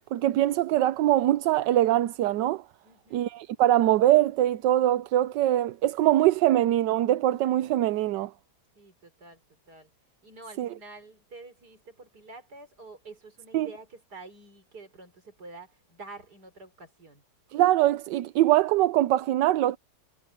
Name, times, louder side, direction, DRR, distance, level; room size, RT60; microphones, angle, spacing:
voice 1, 0.1-2.6 3.1-8.3 10.6-10.7 13.5-13.7 17.5-19.8, right 14 dB, 85° right, 1.3 m, -23 dB
voice 2, 2.8-3.3 8.8-9.4 9.7-9.9 10.2-17.2, right 3 dB, 65° right, 5.2 m, -48 dB
omnidirectional pair, 1.9 m